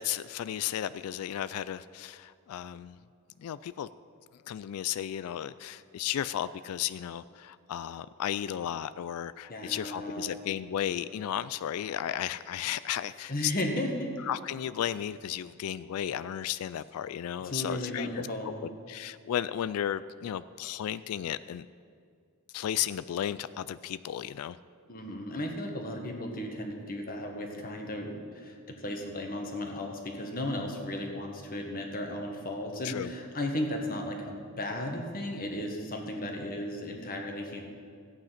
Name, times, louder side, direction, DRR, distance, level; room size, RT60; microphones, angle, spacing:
voice 1, 0.0-3.0 3.4-3.9 4.5-13.5 14.3-18.6 18.9-21.7 22.5-24.6 32.8-33.1, left 10 dB, 80° left, 15 dB, 0.3 m, -34 dB
voice 2, 9.5-10.4 13.3-14.1 17.4-18.7 24.9-37.6, left 1 dB, 40° left, 2 dB, 1.6 m, -35 dB
14.0 x 9.0 x 5.9 m, 2.2 s
head